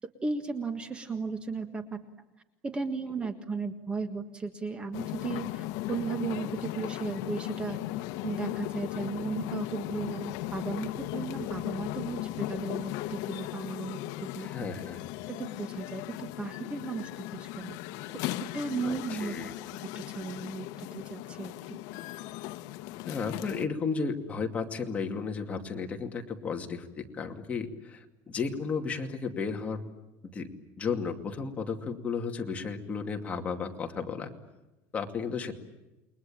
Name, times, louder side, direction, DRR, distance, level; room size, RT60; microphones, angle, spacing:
voice 1, 0.2-2.0 2.6-7.8 8.2-14.5 15.3-17.8 18.4-19.3 20.0-21.8, right 4 dB, 15° right, 8 dB, 1.6 m, -35 dB
sound 1, 4.9-23.7, left 16 dB, 65° left, 1.0 m, -37 dB
voice 2, 14.4-15.0 18.8-19.5 23.1-29.8 30.3-30.5 30.8-34.3 34.9-35.5, left 5 dB, 20° left, 3 dB, 2.5 m, -34 dB
29.0 x 23.0 x 8.9 m, 1.0 s
cardioid pair, 160°, 7 cm